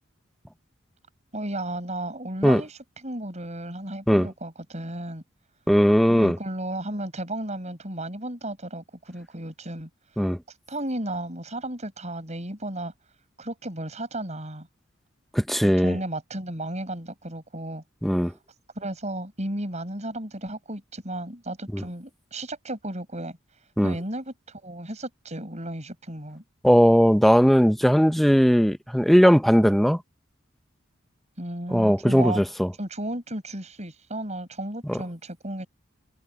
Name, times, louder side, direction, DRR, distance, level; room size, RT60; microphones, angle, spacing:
voice 1, 1.3-5.2 6.1-9.9 10.5-12.9 13.4-14.7 15.6-17.8 18.8-23.4 23.8-26.4 31.4-32.4 32.8-35.7, right 1 dB, 35° right, 7.5 m, -34 dB
voice 2, 5.7-6.4 10.2-10.4 15.3-16.0 18.0-18.3 21.7-21.8 23.8-23.9 26.6-30.0 31.7-32.7 34.9-35.0, equal, ahead, 0.8 m, -18 dB
head